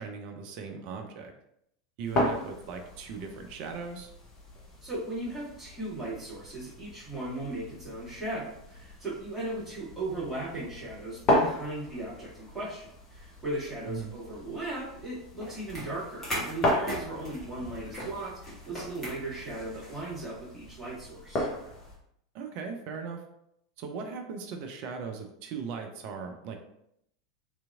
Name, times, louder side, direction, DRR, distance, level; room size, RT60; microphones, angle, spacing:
voice 1, 0.0-1.3 2.0-4.1 13.9-14.1 22.3-23.2 23.8-26.6, right 5 dB, 45° right, 5 dB, 0.4 m, -38 dB
sound 1, 2.0-22.0, left 1 dB, 30° left, 0.7 m, -36 dB
voice 2, 4.8-21.5, right 2 dB, 15° right, -8 dB, 1.5 m, -37 dB
sound 2, 15.4-20.2, equal, 10° left, 1.1 m, -39 dB
2.8 x 2.5 x 2.3 m, 0.76 s
figure-of-eight pair, 85°, 3 cm